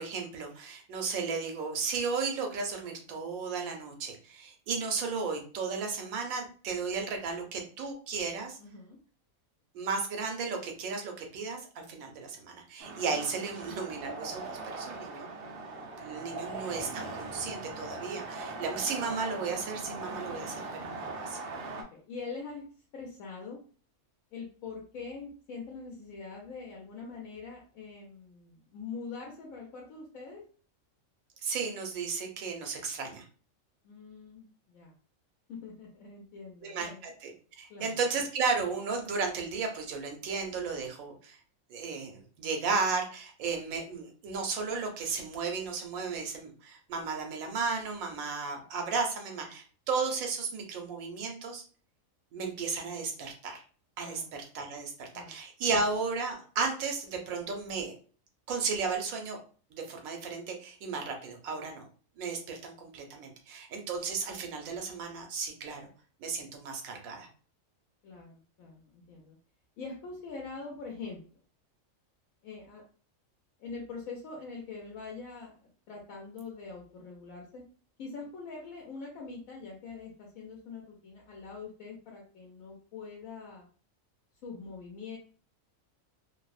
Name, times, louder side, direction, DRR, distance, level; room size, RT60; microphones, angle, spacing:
voice 1, 0.0-8.6 9.7-15.3 16.0-21.4 31.4-33.2 36.6-37.3 37.6-41.4 41.7-51.6 52.3-53.6 54.0-58.0 58.5-59.4 59.7-61.9 62.2-65.8 66.2-67.3, right 4 dB, 90° right, 3 dB, 1.1 m, -34 dB
voice 2, 8.6-9.0 16.3-16.6 21.7-22.7 22.9-23.6 24.3-30.4 33.8-34.9 35.5-37.0 37.7-37.9 54.0-54.3 55.1-55.3 68.0-69.4 69.8-71.2 72.4-72.8 73.6-77.6 78.0-83.7 84.4-85.2, left 4 dB, 85° left, -1 dB, 1.0 m, -44 dB
sound 1, 12.8-21.8, right 3 dB, 60° right, 0.6 m, -40 dB
2.7 x 2.0 x 2.3 m, 0.40 s
omnidirectional pair, 1.4 m